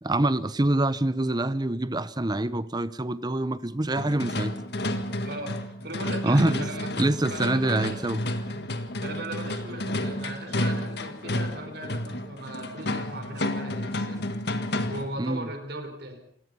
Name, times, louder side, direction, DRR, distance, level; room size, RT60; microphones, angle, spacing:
voice 1, 0.0-4.5 6.2-6.7 7.0-8.2 15.2-15.5, right 1 dB, 20° right, 15 dB, 0.8 m, -25 dB
sound 1, 4.0-15.2, left 1 dB, 60° left, 1.7 m, -31 dB
voice 2, 5.2-6.9 7.3-8.0 8.5-14.3 14.8-16.2, right 1 dB, 60° right, 7 dB, 4.5 m, -38 dB
27.5 x 18.0 x 5.6 m, 0.64 s
head